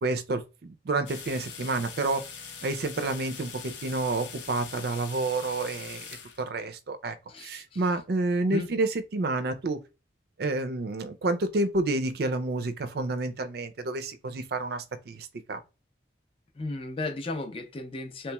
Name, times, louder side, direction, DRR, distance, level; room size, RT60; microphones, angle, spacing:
voice 1, 0.0-2.2 2.6-6.0 6.4-9.8 10.4-15.6, right 2 dB, 55° right, 0.4 m, -29 dB
sound 1, 1.1-6.5, left 6 dB, 75° left, 0.7 m, -42 dB
voice 2, 7.3-7.8 8.5-8.7 16.6-18.3, left 2 dB, 30° left, 0.4 m, -34 dB
3.3 x 2.9 x 2.2 m
head